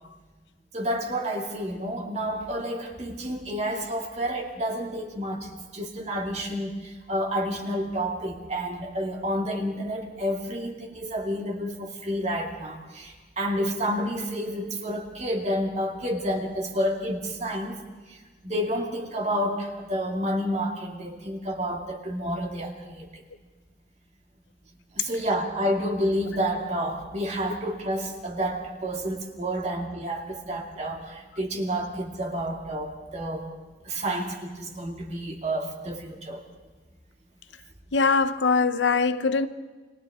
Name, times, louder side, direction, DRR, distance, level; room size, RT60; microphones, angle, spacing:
voice 1, 0.7-17.8 18.1-18.2 18.4-23.2 24.9-33.5 33.8-36.4, equal, 40° right, 2.5 m, -30 dB
voice 2, 37.9-39.5, left 4 dB, 85° left, 0.8 m, -22 dB
30.0 x 24.0 x 3.7 m
head